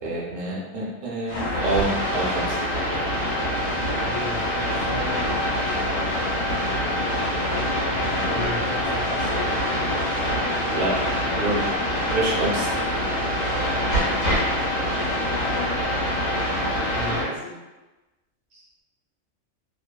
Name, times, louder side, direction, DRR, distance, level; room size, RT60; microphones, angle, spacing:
voice 1, 0.0-2.6 10.7-11.0 11.4-11.7 12.1-12.7, right 2 dB, 55° right, -5 dB, 0.7 m, -27 dB
sound 1, 1.3-17.2, equal, 80° left, 1.3 m, -25 dB
voice 2, 4.0-5.3 5.6-6.7 7.9-9.5 16.9-17.6, left 2 dB, 45° left, -8 dB, 0.9 m, -35 dB
2.8 x 2.0 x 2.2 m, 1.1 s
omnidirectional pair, 1.3 m